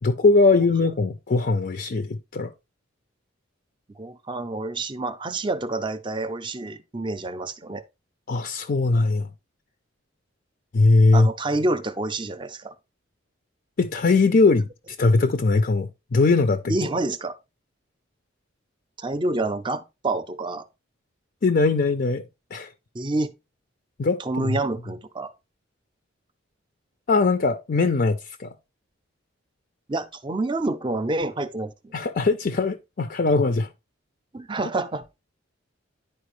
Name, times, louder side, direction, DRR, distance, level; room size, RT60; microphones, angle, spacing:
voice 1, 0.0-2.5 8.3-9.3 10.7-11.3 13.8-14.7 15.0-16.7 21.4-22.2 22.5-22.7 24.0-24.6 27.1-28.5 31.9-33.7, left 3 dB, 45° left, 0.5 m, -20 dB
voice 2, 3.9-7.8 11.1-12.7 16.7-17.4 19.0-20.7 22.9-23.3 24.2-25.3 29.9-31.9 34.3-35.1, right 2 dB, 25° right, 0.5 m, -28 dB
10.5 x 4.4 x 3.1 m
head